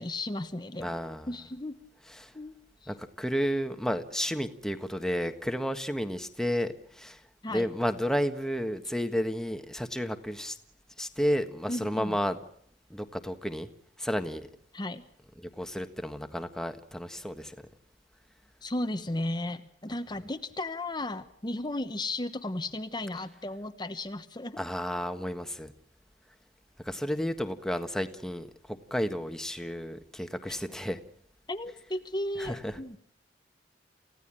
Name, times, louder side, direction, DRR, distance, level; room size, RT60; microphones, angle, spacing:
voice 1, 0.0-0.9 1.3-1.7 2.3-2.6 2.8-2.9 7.4-7.7 11.7-12.2 14.7-15.0 18.6-24.6 31.5-33.0, left 1 dB, 25° left, 9 dB, 1.1 m, -34 dB
voice 2, 0.8-1.4 2.0-2.3 2.9-7.2 7.5-10.6 11.0-12.4 12.9-13.7 14.0-14.5 15.3-17.5 24.6-25.7 26.8-31.0 32.4-32.8, equal, 5° left, 8 dB, 1.5 m, -32 dB
29.0 x 16.5 x 8.9 m, 0.67 s
head